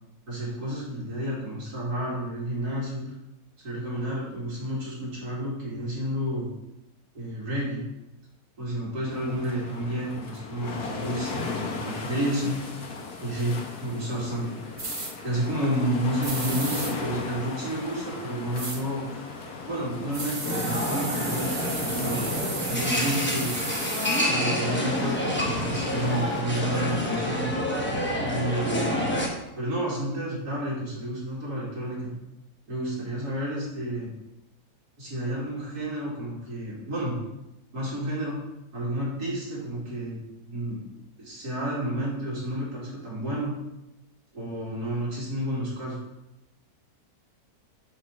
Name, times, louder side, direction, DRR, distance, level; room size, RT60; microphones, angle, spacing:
voice 1, 0.3-3.0 3.6-6.5 7.1-7.8 8.6-12.6 13.2-14.8 15.2-19.0 19.7-23.7 24.3-27.5 28.2-29.1 29.5-32.1 32.7-34.1 35.0-37.2 37.7-38.4 38.7-40.2 40.5-40.8 41.2-43.5 44.3-46.0, right 1 dB, 80° right, -7 dB, 2.7 m, -30 dB
sound 1, 9.1-26.4, left 4 dB, 80° left, 1.5 m, -37 dB
sound 2, 14.8-15.1 16.2-16.9 18.5-18.8 20.1-24.2, right 2 dB, 30° right, 0.7 m, -33 dB
sound 3, 20.4-29.3, equal, 10° left, 0.7 m, -28 dB
6.1 x 5.1 x 4.3 m, 0.94 s
omnidirectional pair, 1.6 m